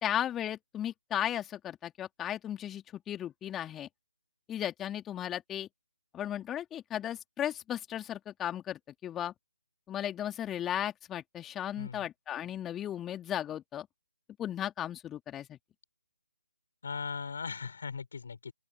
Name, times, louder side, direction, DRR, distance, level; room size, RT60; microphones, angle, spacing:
voice 1, 0.0-3.9 4.5-5.7 6.1-9.3 9.9-13.9 14.4-15.6, left 11 dB, 10° left, 2.9 m, -35 dB
voice 2, 11.8-12.1 16.8-18.5, left 5 dB, 55° left, 4.4 m, -38 dB
open air
figure-of-eight pair, 145°, 0 cm